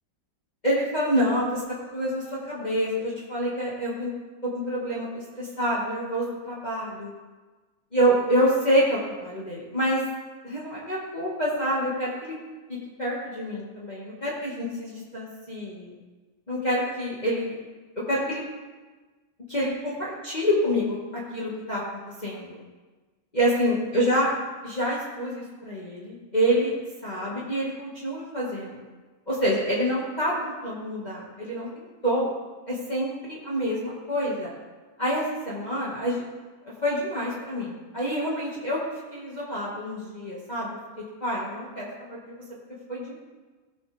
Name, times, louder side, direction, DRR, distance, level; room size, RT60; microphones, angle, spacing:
voice 1, 0.6-4.1 4.4-7.1 7.9-10.0 10.4-12.4 13.0-16.0 16.5-17.6 18.1-18.4 19.5-22.6 23.3-24.3 24.6-26.7 27.0-28.8 29.3-32.3 32.7-34.5 35.0-36.2 36.8-38.8 39.1-40.8 41.2-42.4 42.9-43.2, equal, 25° left, -7 dB, 2.2 m, -27 dB
17.5 x 7.9 x 3.6 m, 1.3 s
omnidirectional pair, 1.8 m